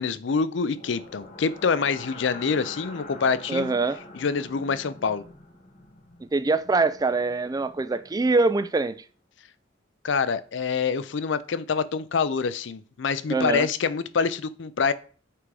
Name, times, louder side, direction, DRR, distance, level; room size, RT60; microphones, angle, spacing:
voice 1, 0.0-3.8 4.1-5.2 10.0-14.9, left 5 dB, 65° left, 0.5 m, -26 dB
sound 1, 0.7-8.7, left 2 dB, 40° left, 1.2 m, -45 dB
voice 2, 3.5-4.0 6.3-9.0 13.3-13.7, right 3 dB, 20° right, 0.3 m, -23 dB
6.0 x 4.8 x 4.7 m
head